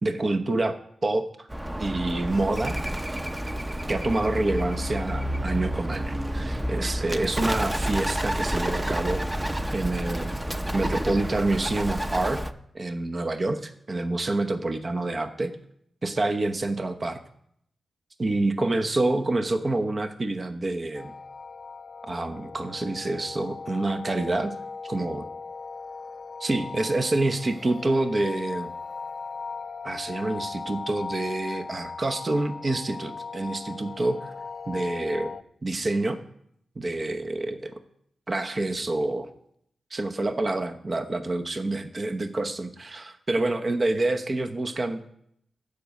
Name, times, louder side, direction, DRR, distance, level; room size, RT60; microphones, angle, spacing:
voice 1, 0.0-1.5 1.8-2.8 3.9-9.2 9.7-10.4 10.7-12.4 12.7-15.5 16.0-17.2 18.2-21.1 22.1-24.5 24.8-25.3 26.4-28.7 29.8-34.3 34.7-35.4 35.6-36.2 36.8-37.8 38.3-39.3 39.9-45.0, right 2 dB, 45° right, 6 dB, 0.9 m, -27 dB
Bird, 1.5-12.5, right 1 dB, 15° right, 0.8 m, -29 dB
sound 1, 20.9-35.4, left 4 dB, 60° left, 0.5 m, -38 dB
13.5 x 5.2 x 8.1 m, 0.73 s
cardioid pair, 45°, 0 cm